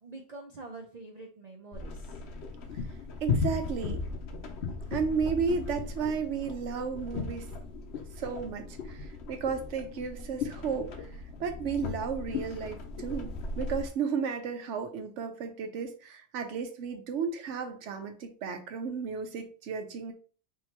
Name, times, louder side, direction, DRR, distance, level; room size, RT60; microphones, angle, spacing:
voice 1, 0.0-2.2, right 3 dB, 45° right, 2 dB, 0.6 m, -46 dB
sound 1, 1.7-13.9, left 4 dB, 70° left, 1.0 m, -36 dB
voice 2, 3.2-4.0 4.9-7.5 8.2-10.9 11.4-20.1, right 6 dB, 85° right, 7 dB, 1.1 m, -33 dB
3.6 x 3.1 x 4.3 m, 0.39 s
omnidirectional pair, 1.2 m